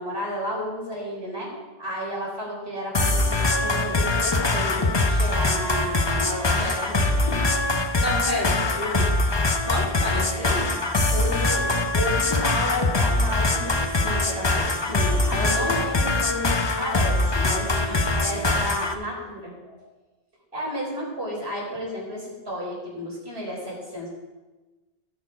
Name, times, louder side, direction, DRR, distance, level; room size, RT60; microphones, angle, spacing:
voice 1, 0.0-8.0 11.1-19.8 20.5-24.1, equal, 80° right, -4 dB, 4.6 m, -32 dB
sound 1, 2.9-18.9, left 2 dB, 30° left, 0.8 m, -23 dB
voice 2, 8.0-9.1 9.6-10.8 17.8-18.6, left 1 dB, 55° left, -4 dB, 3.0 m, -31 dB
16.5 x 6.7 x 5.1 m, 1.2 s
omnidirectional pair, 1.0 m